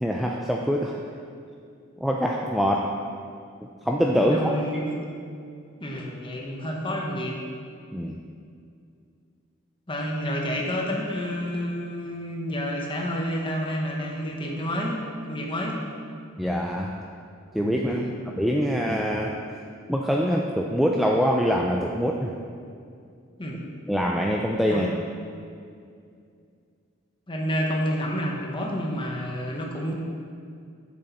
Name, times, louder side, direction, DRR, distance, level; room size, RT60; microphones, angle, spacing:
voice 1, 0.0-1.0 2.0-2.9 3.6-4.5 7.9-8.2 16.4-17.0 17.5-18.0 18.4-19.3 19.9-22.3 23.9-24.9, equal, ahead, -1 dB, 0.3 m, -24 dB
voice 2, 4.3-4.9 5.8-7.4 9.9-15.0 15.3-15.8 17.9-18.1 23.4-23.6 24.7-24.9 27.3-29.9, equal, 25° left, -1 dB, 1.0 m, -29 dB
6.9 x 6.4 x 4.3 m, 2.3 s
head